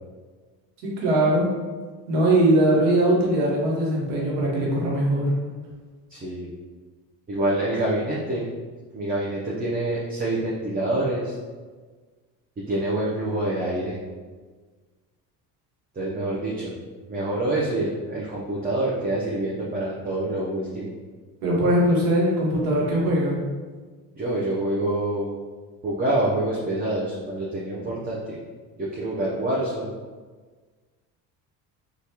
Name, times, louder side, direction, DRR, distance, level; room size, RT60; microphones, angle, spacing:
voice 1, 0.8-1.5 2.1-5.3 21.4-23.4, right 1 dB, 80° right, -4 dB, 1.1 m, -21 dB
voice 2, 6.1-6.5 7.3-8.5 8.9-11.3 12.7-14.0 15.9-16.8 17.1-20.9 24.1-25.3 25.8-28.4 28.8-29.9, right 1 dB, 20° right, -5 dB, 0.6 m, -26 dB
3.2 x 2.4 x 2.8 m, 1.4 s
hypercardioid pair, 75°, 44 cm